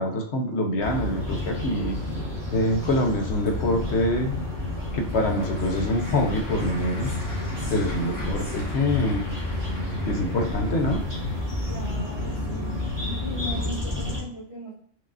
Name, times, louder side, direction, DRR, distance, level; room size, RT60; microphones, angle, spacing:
voice 1, 0.0-2.0 2.5-4.4 4.9-7.1 7.7-9.2 10.1-11.0, left 1 dB, 65° left, 3 dB, 0.9 m, -25 dB
sound 1, 0.8-14.2, left 2 dB, 20° right, 1.1 m, -30 dB
Applause / Crowd, 4.9-11.4, left 1 dB, 85° left, 1.8 m, -44 dB
voice 2, 11.7-12.8 13.0-14.7, equal, 30° left, -6 dB, 1.4 m, -38 dB
4.7 x 2.4 x 2.4 m, 0.62 s
omnidirectional pair, 1.3 m